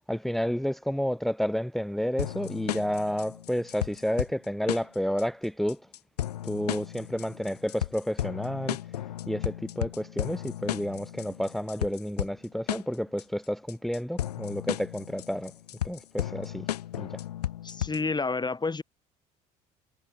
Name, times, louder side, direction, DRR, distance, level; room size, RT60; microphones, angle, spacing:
voice 1, 0.1-5.8 6.4-8.8 9.3-15.5 15.8-16.7 16.9-17.2, equal, ahead, 3.1 m, -30 dB
sound 1, 2.2-18.2, left 12 dB, 85° left, 5.3 m, -34 dB
voice 2, 17.6-18.8, left 4 dB, 20° left, 2.0 m, -29 dB
hypercardioid pair, 65°, 20 cm